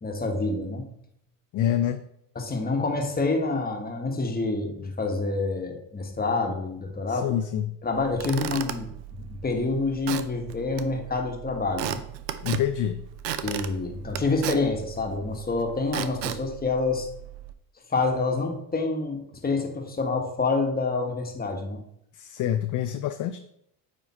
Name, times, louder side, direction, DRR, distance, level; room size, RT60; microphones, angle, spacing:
voice 1, 0.0-0.9 2.3-7.3 7.8-8.9 9.3-12.0 13.4-17.1 17.9-21.8, left 3 dB, 20° left, 3 dB, 1.3 m, -27 dB
voice 2, 1.5-2.0 7.1-7.8 12.4-13.0 22.1-23.4, left 10 dB, 40° left, 9 dB, 0.5 m, -26 dB
Squeak / Wood, 7.9-17.5, right 11 dB, 90° right, 0.6 m, -36 dB
9.0 x 3.1 x 4.2 m, 0.74 s
hypercardioid pair, 80°, 49 cm